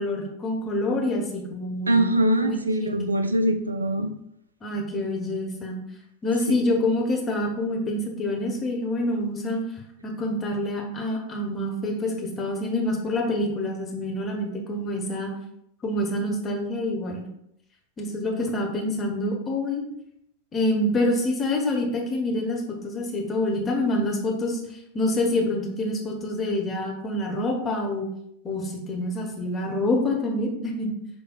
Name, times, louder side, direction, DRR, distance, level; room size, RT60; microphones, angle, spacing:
voice 1, 0.0-2.1 2.4-2.5 2.8-2.9 4.6-5.8 6.2-9.6 10.0-15.3 15.8-17.2 18.0-19.8 20.5-24.6 24.9-28.1 28.4-30.9, left 1 dB, 20° left, 0 dB, 1.0 m, -26 dB
voice 2, 1.9-4.1 6.5-6.6, right 1 dB, 80° right, 8 dB, 0.4 m, -23 dB
5.9 x 3.4 x 2.3 m, 0.77 s
figure-of-eight pair, 90°, 0 cm